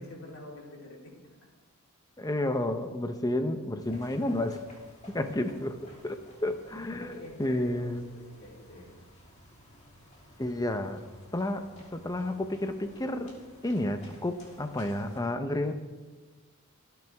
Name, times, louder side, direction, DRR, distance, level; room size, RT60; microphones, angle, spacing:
voice 1, 0.0-1.5 7.0-8.9 15.6-15.7, left 1 dB, 65° left, -2 dB, 3.6 m, -47 dB
voice 2, 2.2-4.6 5.1-5.8 6.0-7.1 7.4-8.0 10.4-11.0 11.3-11.7 11.9-13.3 13.6-15.7, left 1 dB, 15° left, 7 dB, 0.9 m, -31 dB
sound 1, 3.8-15.2, left 1 dB, 30° left, 3.4 m, -54 dB
25.5 x 9.4 x 3.6 m, 1.3 s
head